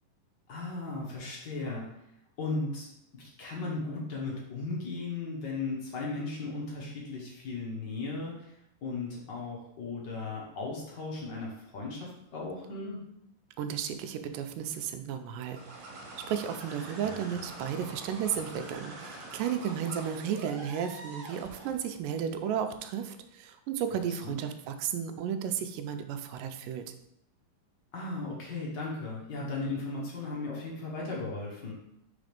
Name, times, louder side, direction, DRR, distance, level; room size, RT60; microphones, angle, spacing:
voice 1, 0.5-2.0 2.4-2.9 3.1-13.0 17.0-17.2 24.2-24.4 27.9-31.7, left 3 dB, 70° left, -4 dB, 1.0 m, -36 dB
voice 2, 13.6-16.0 16.3-26.8, right 8 dB, 85° right, 8 dB, 2.2 m, -33 dB
sound 1, 15.4-22.0, right 2 dB, 60° right, 2.3 m, -45 dB
5.0 x 4.1 x 5.1 m, 0.81 s
omnidirectional pair, 3.8 m